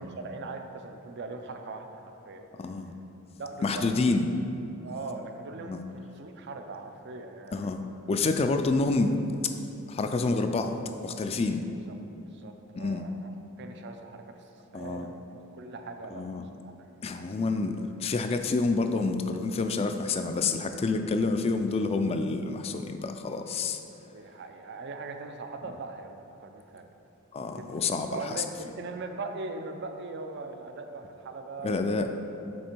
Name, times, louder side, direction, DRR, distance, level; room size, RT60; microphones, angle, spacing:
voice 1, 0.0-2.5 3.4-4.2 4.8-7.9 11.9-12.0 12.3-15.3 15.5-16.2 16.6-16.7 24.0-26.8 27.5-27.7 28.1-32.1, right 3 dB, 55° right, 6 dB, 0.5 m, -40 dB
voice 2, 2.6-2.9 3.6-4.3 5.6-5.8 7.5-7.8 8.1-9.2 9.9-10.7 11.0-11.6 12.8-13.0 14.7-15.1 16.1-16.5 17.0-23.8 27.3-28.4 31.6-32.1, left 3 dB, 30° left, 7 dB, 0.3 m, -28 dB
6.3 x 4.3 x 4.4 m, 2.8 s
head